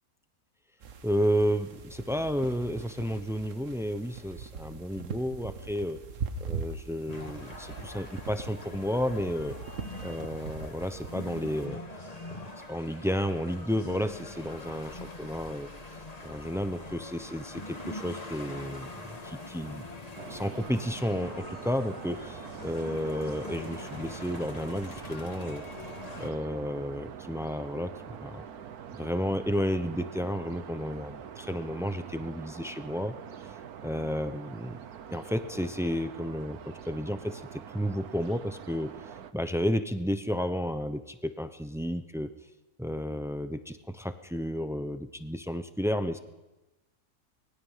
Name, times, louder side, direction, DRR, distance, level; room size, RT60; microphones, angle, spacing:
sound 1, 0.8-11.7, right 5 dB, 55° right, 1.5 m, -41 dB
voice 1, 1.0-6.0 6.4-9.6 10.0-11.8 12.7-15.7 16.2-19.9 20.3-25.6 26.2-28.4 29.0-33.1 33.8-34.8 35.1-38.9 39.3-42.3 42.8-46.2, equal, 5° right, 10 dB, 0.4 m, -32 dB
sound 2, 7.1-26.3, left 2 dB, 25° left, 1.9 m, -43 dB
sound 3, 20.2-39.3, right 8 dB, 75° right, 1.5 m, -45 dB
24.5 x 20.5 x 5.7 m, 1.1 s
omnidirectional pair, 1.6 m